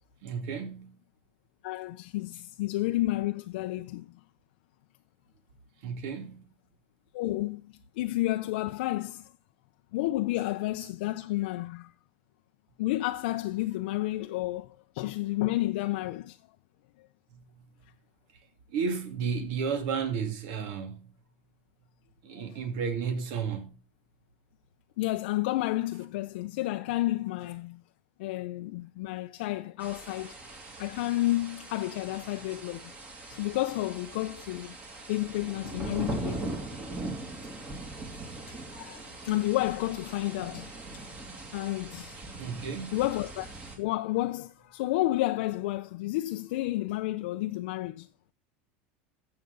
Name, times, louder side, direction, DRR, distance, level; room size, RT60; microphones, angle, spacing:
voice 1, 0.2-1.0 5.8-6.4 17.3-17.6 18.7-21.1 22.2-23.8 42.4-43.0, right 6 dB, 60° right, 2.3 m, -33 dB
voice 2, 1.6-4.2 7.1-9.3 9.9-11.9 12.8-16.4 25.0-27.8 28.2-30.4 30.8-32.9 33.3-34.8 35.1-36.5 38.5-40.7 41.5-42.2 42.9-43.5 43.8-48.1, left 17 dB, 75° left, 0.5 m, -31 dB
sound 1, 29.8-43.8, right 2 dB, 25° right, 2.4 m, -41 dB
12.5 x 7.7 x 3.9 m
supercardioid pair, 150°, 6 cm